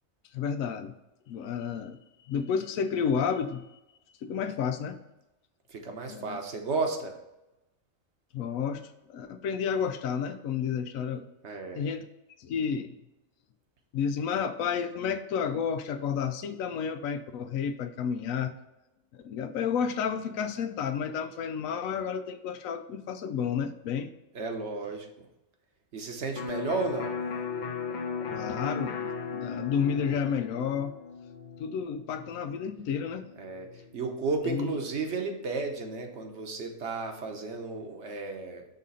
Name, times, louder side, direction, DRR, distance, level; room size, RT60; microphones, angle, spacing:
voice 1, 0.3-0.9 1.3-2.0 2.3-3.7 4.2-5.0 6.1-6.4 8.3-8.8 9.1-11.3 11.7-12.0 12.4-12.9 13.9-18.5 19.1-24.1 28.3-30.9 31.6-33.3 34.5-34.7, left 7 dB, 90° left, 8 dB, 1.0 m, -31 dB
voice 2, 5.7-7.2 11.4-11.9 24.3-25.3 25.9-27.2 33.4-38.6, right 3 dB, 60° right, 3 dB, 1.2 m, -33 dB
Electric guitar, 26.4-34.0, left 6 dB, 50° left, 0.6 m, -37 dB
6.6 x 3.7 x 5.4 m, 0.94 s
omnidirectional pair, 1.4 m